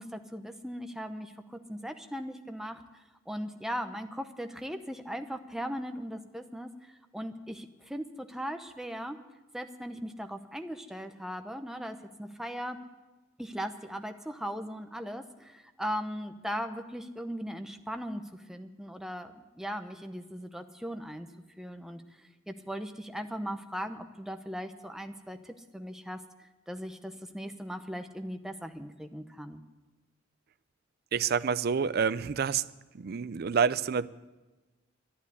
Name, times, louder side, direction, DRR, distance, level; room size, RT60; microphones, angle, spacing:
voice 1, 0.0-2.8 3.3-9.2 9.5-12.8 13.4-21.3 21.6-29.6, equal, ahead, 0.8 m, -38 dB
voice 2, 31.1-32.6 32.9-34.1, right 6 dB, 55° right, 0.4 m, -28 dB
11.5 x 11.0 x 9.6 m
head